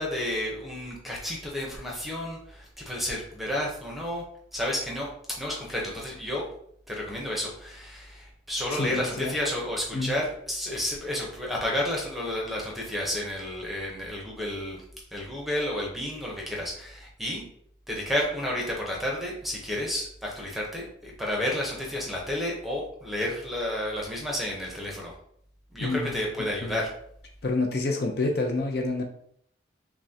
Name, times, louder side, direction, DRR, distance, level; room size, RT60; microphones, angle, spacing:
voice 1, 0.0-4.2 4.5-6.4 6.9-14.8 15.1-17.4 17.9-25.1 25.7-26.9, left 1 dB, ahead, -2 dB, 0.8 m, -31 dB
voice 2, 8.7-9.3 9.9-10.1 25.8-26.2 26.6-26.8 27.4-29.0, left 2 dB, 55° left, 2 dB, 0.6 m, -28 dB
5.9 x 2.2 x 2.7 m, 0.67 s
head